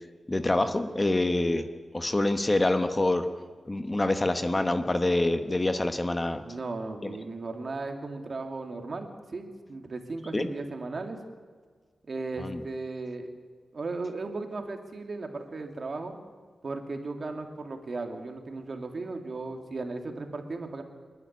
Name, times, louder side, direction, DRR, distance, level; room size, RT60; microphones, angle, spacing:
voice 1, 0.3-1.6 1.9-3.2 3.6-6.4 7.0-7.2 10.3-10.5 12.4-12.6, left 2 dB, 25° left, 8 dB, 1.3 m, -26 dB
voice 2, 6.4-11.2 12.1-13.3 13.7-16.2 16.6-20.8, right 3 dB, 50° right, 4 dB, 2.6 m, -36 dB
28.5 x 11.0 x 9.6 m, 1.5 s
wide cardioid pair, 85°, 0 cm